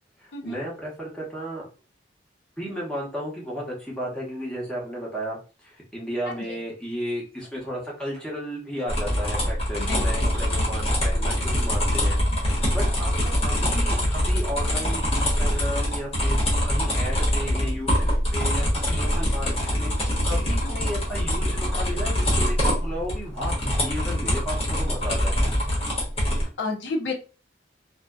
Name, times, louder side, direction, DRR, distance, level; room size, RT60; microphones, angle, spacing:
voice 1, 0.2-1.7 2.6-25.5, equal, 5° left, -5 dB, 0.8 m, -34 dB
voice 2, 6.3-6.6 9.8-10.0 26.6-27.1, left 3 dB, 70° left, 1 dB, 0.6 m, -30 dB
sound 1, 8.9-26.4, equal, 30° left, 0.9 m, -24 dB
2.6 x 2.1 x 2.2 m, 0.35 s
head